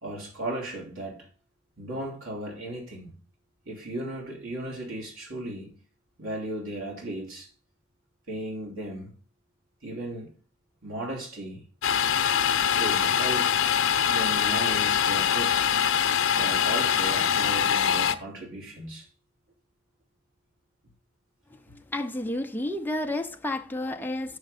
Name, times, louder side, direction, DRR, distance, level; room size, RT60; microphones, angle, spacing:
voice 1, 0.0-1.3 1.8-3.1 3.6-5.7 6.2-7.5 8.3-9.1 9.8-10.3 10.8-11.6 12.7-13.6 14.1-15.7 16.3-19.1, right 1 dB, 75° right, 2.9 m, -36 dB
Domestic sounds home sounds, 11.8-18.1, left 8 dB, 70° left, 0.7 m, -23 dB
voice 2, 21.5-24.4, left 1 dB, 10° left, 0.6 m, -31 dB
6.5 x 6.5 x 6.6 m
head